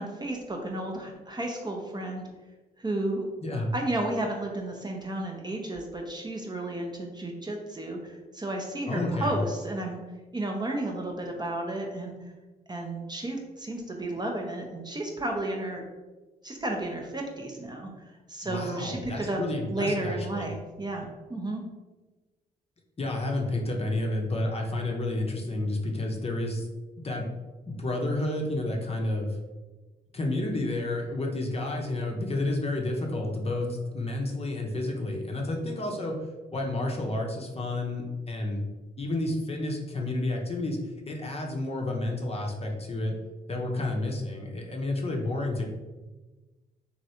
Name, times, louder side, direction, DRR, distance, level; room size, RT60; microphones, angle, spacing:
voice 1, 0.0-2.3 2.8-3.3 3.7-10.0 10.3-12.2 12.7-15.8 16.4-17.9 18.3-19.4 19.7-21.6, right 1 dB, 20° right, 1 dB, 0.6 m, -32 dB
voice 2, 3.4-3.7 8.9-9.4 18.4-20.5 23.0-26.7 27.0-27.3 27.7-29.4 30.1-38.6 39.0-40.8 41.1-43.2 43.5-45.7, left 2 dB, 30° left, 1 dB, 0.7 m, -30 dB
3.0 x 2.6 x 2.7 m, 1.2 s
hypercardioid pair, 45°, 21 cm